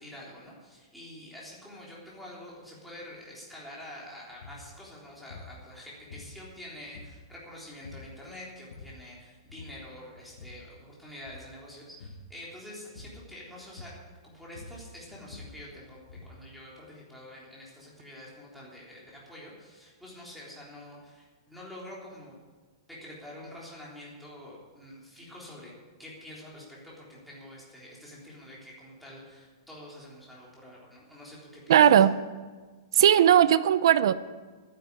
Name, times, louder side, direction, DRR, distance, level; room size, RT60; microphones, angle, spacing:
voice 1, 0.0-22.3 22.9-25.7 26.0-32.0, left 1 dB, ahead, -6 dB, 3.6 m, -47 dB
sound 1, 4.3-4.7 5.3-5.6 6.1-6.6 6.9-7.4 7.8-8.1 8.5-9.1 9.5-9.9 10.2-10.7 11.1-11.5 12.0-12.3 13.0-13.3 13.8-14.1 14.4-16.5, left 3 dB, 85° left, 2.0 m, -47 dB
voice 2, 31.7-32.1 32.9-34.1, right 10 dB, 65° right, 15 dB, 0.6 m, -18 dB
11.5 x 10.0 x 8.2 m, 1.4 s
hypercardioid pair, 160°, 3 cm